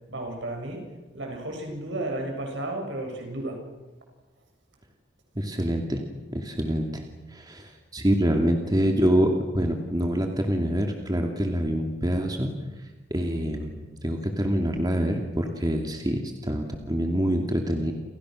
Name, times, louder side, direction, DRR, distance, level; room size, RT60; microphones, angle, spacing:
voice 1, 0.1-0.9 1.1-3.6, right 1 dB, 70° right, 2 dB, 7.4 m, -33 dB
voice 2, 5.4-6.0 6.3-7.0 7.3-7.6 7.9-12.5 13.1-17.9, equal, 20° right, 3 dB, 2.5 m, -25 dB
29.5 x 28.5 x 6.5 m, 1.2 s
head